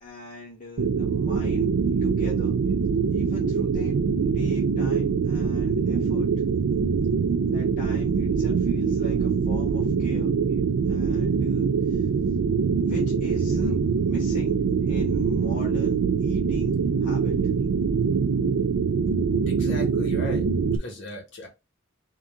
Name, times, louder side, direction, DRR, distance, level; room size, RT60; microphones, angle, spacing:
voice 1, 0.0-1.7 2.0-2.6 3.1-3.9 4.3-6.3 7.5-10.3 10.9-12.1 12.8-14.5 14.9-16.7 17.0-17.3, left 2 dB, 40° left, 1.0 m, -41 dB
sound 1, 0.8-20.8, right 5 dB, 75° right, 0.4 m, -24 dB
voice 2, 19.5-20.4 20.8-21.5, left 1 dB, 60° left, 1.5 m, -37 dB
3.7 x 2.8 x 3.6 m
head